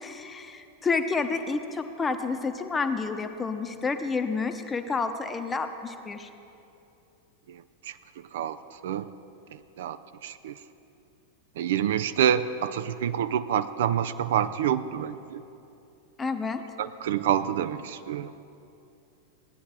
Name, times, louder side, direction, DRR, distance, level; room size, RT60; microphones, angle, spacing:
voice 1, 0.0-6.3 16.2-16.6, left 4 dB, 15° left, 8 dB, 0.8 m, -29 dB
voice 2, 7.5-9.1 9.5-10.6 11.6-15.4 16.8-18.3, right 9 dB, 55° right, 13 dB, 0.3 m, -28 dB
16.5 x 10.0 x 4.3 m, 2.7 s
figure-of-eight pair, 90°, 0 cm